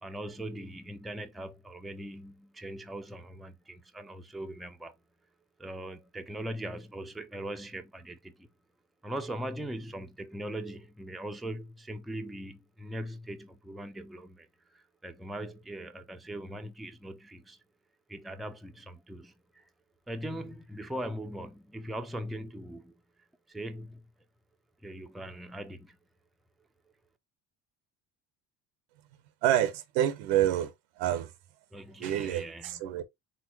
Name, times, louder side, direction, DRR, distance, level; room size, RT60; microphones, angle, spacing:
voice 1, 0.0-5.0 5.6-8.5 9.0-14.5 14.7-17.6 18.1-19.7 20.1-22.9 23.5-24.0 24.8-26.0 31.7-33.0, right 1 dB, ahead, 0.5 m, -40 dB
voice 2, 29.4-30.7 31.0-31.3 32.0-33.0, right 12 dB, 80° right, 1.0 m, -27 dB
4.4 x 3.7 x 2.8 m
supercardioid pair, 80°, 44 cm